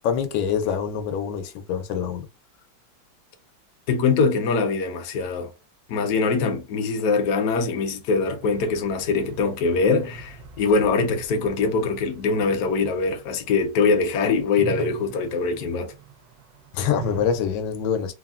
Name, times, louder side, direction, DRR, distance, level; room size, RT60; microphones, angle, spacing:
voice 1, 0.0-2.3 16.7-18.1, left 7 dB, 90° left, 1.4 m, -25 dB
voice 2, 3.9-5.5 5.9-15.9, left 4 dB, 65° left, 1.0 m, -23 dB
sound 1, 8.4-14.0 14.4-17.4, right 6 dB, 65° right, 1.0 m, -41 dB
3.5 x 2.1 x 2.3 m
omnidirectional pair, 2.1 m